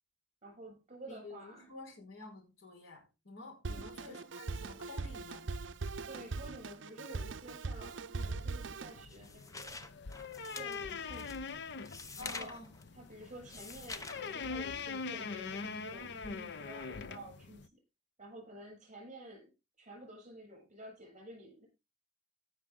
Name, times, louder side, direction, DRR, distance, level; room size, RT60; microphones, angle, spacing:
voice 1, 0.4-1.7 3.7-4.2 6.0-9.9 10.5-11.4 12.2-12.5 12.9-17.8 18.2-19.5 19.8-21.7, right 1 dB, 35° right, 7.9 m, -51 dB
voice 2, 1.1-5.5 12.2-12.7, left 3 dB, 85° left, 5.2 m, -50 dB
Drum kit, 3.6-9.0, right 3 dB, 60° right, 0.7 m, -41 dB
sound 1, 8.7-14.3, left 3 dB, 15° left, 0.7 m, -47 dB
sound 2, 8.9-17.7, left 5 dB, 55° left, 0.7 m, -43 dB
17.5 x 6.4 x 3.8 m
head